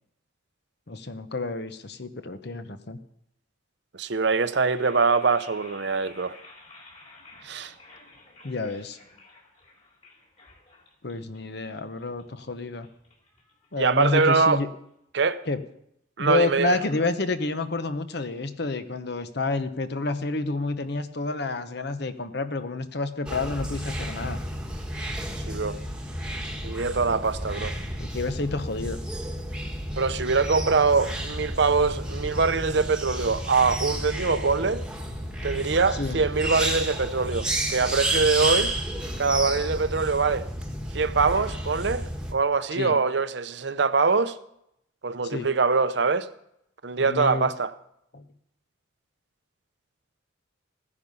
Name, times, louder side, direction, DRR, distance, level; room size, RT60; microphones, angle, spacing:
voice 1, 0.9-3.0 8.4-9.0 11.0-12.9 13.7-14.7 15.4-15.6 16.2-24.4 28.0-29.0 35.9-36.2 42.7-42.9 45.3-45.5 47.0-47.5 48.1-48.2, left 3 dB, 55° left, 1.0 m, -29 dB
voice 2, 3.9-6.4 7.4-7.7 13.8-14.6 15.1-15.4 16.2-16.8 25.5-25.8 26.6-27.7 29.9-34.8 35.4-38.7 39.2-40.5 40.9-44.4 45.0-46.3 46.8-47.7, right 4 dB, 60° right, 0.7 m, -23 dB
sound 1, 4.3-14.4, left 2 dB, 35° left, 3.2 m, -52 dB
sound 2, 23.3-42.3, right 1 dB, 5° right, 1.3 m, -31 dB
15.5 x 10.0 x 5.5 m
head